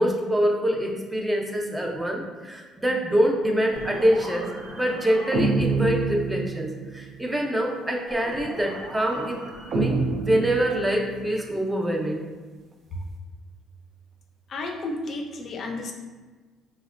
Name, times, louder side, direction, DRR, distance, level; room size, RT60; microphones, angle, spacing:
voice 1, 0.0-9.5 9.7-12.2, right 1 dB, 10° right, 1 dB, 0.5 m, -25 dB
sound 1, 3.7-7.0 8.1-11.3, right 3 dB, 60° right, 0.5 m, -29 dB
voice 2, 14.5-15.9, left 2 dB, 50° left, 3 dB, 0.4 m, -32 dB
3.9 x 2.1 x 2.4 m, 1.3 s
cardioid pair, 90°, 0 cm